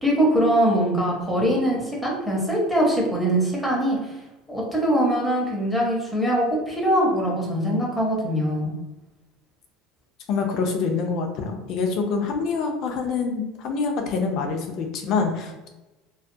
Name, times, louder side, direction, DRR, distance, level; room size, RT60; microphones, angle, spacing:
voice 1, 0.0-4.2 4.5-8.7, right 1 dB, 5° left, -3 dB, 0.7 m, -22 dB
voice 2, 10.3-15.7, left 4 dB, 55° left, 3 dB, 0.5 m, -26 dB
2.3 x 2.2 x 2.7 m, 1.1 s
cardioid pair, 140°, 0 cm